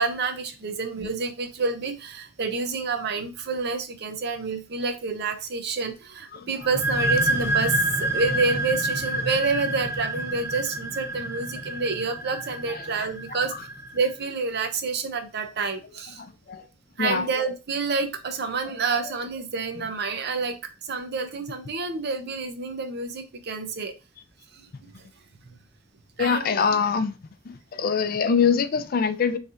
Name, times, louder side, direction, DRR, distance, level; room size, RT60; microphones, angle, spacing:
voice 1, 0.0-13.7 13.9-16.2 17.0-23.9 24.5-25.1 26.2-26.5, right 4 dB, 60° right, 0.7 m, -28 dB
sound 1, 6.6-14.1, right 1 dB, 15° right, 0.6 m, -28 dB
voice 2, 26.2-27.2 27.7-29.4, left 6 dB, 50° left, 0.4 m, -23 dB
5.1 x 3.3 x 2.5 m
head